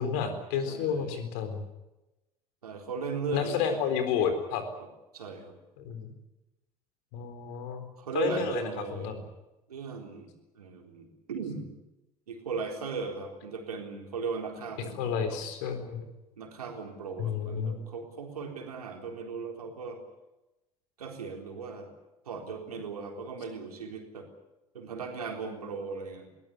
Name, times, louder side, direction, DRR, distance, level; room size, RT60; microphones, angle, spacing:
voice 1, 0.0-1.6 3.3-4.6 5.8-6.1 7.1-7.9 8.1-9.2 15.0-16.1 17.2-17.8, left 7 dB, 60° left, 8 dB, 4.0 m, -31 dB
voice 2, 0.7-1.2 2.6-3.8 5.1-5.6 8.0-9.1 9.7-11.7 12.3-15.4 16.4-20.0 21.0-21.9 22.3-24.3 24.7-26.3, right 5 dB, 75° right, 3 dB, 3.9 m, -37 dB
21.5 x 18.5 x 9.8 m, 0.99 s
figure-of-eight pair, 65°, 19 cm